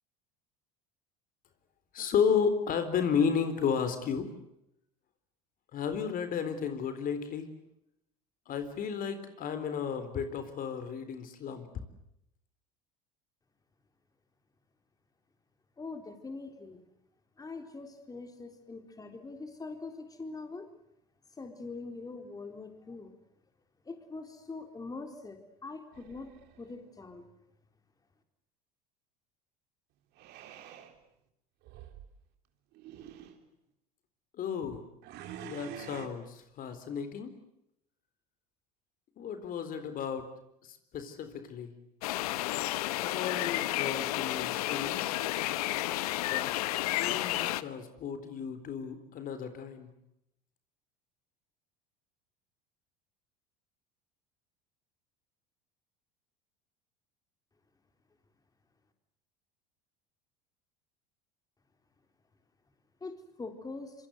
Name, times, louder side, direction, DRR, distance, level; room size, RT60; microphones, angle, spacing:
voice 1, 1.9-4.3 5.7-7.5 8.5-11.7 34.3-34.8 35.4-37.3 39.2-40.3 40.6-41.7 43.0-45.2 46.2-46.5 46.9-49.9, left 6 dB, 50° left, 10 dB, 4.0 m, -33 dB
voice 2, 15.8-16.8 17.4-20.7 21.4-23.1 23.9-26.3 26.6-27.3 63.0-63.9, left 3 dB, 20° left, 6 dB, 3.9 m, -43 dB
sound 1, 25.9-26.8 30.2-30.9 31.6-32.1 32.7-33.4 35.0-36.1, right 10 dB, 60° right, 3.7 m, -47 dB
sound 2, 42.0-47.6, left 16 dB, 80° left, 1.1 m, -31 dB
26.5 x 24.5 x 8.1 m, 0.80 s
hypercardioid pair, 85°, 19 cm